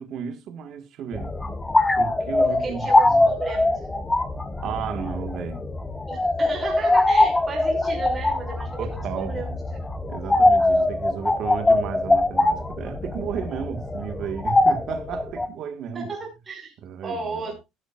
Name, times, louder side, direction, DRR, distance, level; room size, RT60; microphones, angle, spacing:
voice 1, 0.0-1.3 2.0-3.3 4.6-5.6 8.8-9.4 10.1-16.1 16.8-17.4, right 8 dB, 45° right, 1.5 m, -33 dB
sound 1, 1.1-15.5, left 2 dB, 10° left, 1.1 m, -22 dB
voice 2, 2.4-3.9 6.1-9.6 15.9-16.7 17.0-17.6, right 3 dB, 20° right, 5.6 m, -34 dB
18.0 x 8.6 x 2.5 m
cardioid pair, 160°, 0 cm